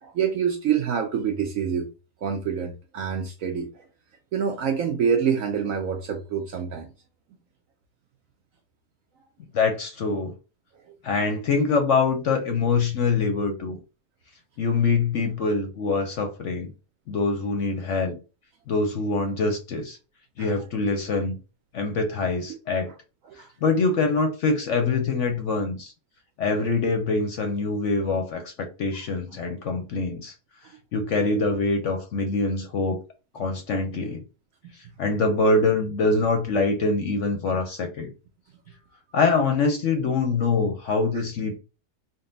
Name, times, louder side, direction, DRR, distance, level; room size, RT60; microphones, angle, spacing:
voice 1, 0.0-1.9 2.2-3.9 4.3-6.9 10.9-11.0 20.4-20.5 23.3-23.5, right 7 dB, 65° right, 0.8 m, -26 dB
voice 2, 9.5-10.3 11.0-13.8 14.6-16.7 17.1-18.2 18.7-20.0 20.4-21.4 21.7-22.9 23.4-25.9 26.4-30.3 30.9-33.0 33.3-34.2 35.0-38.1 39.1-41.6, left 3 dB, 60° left, 0.9 m, -24 dB
3.9 x 2.2 x 3.7 m
omnidirectional pair, 1.8 m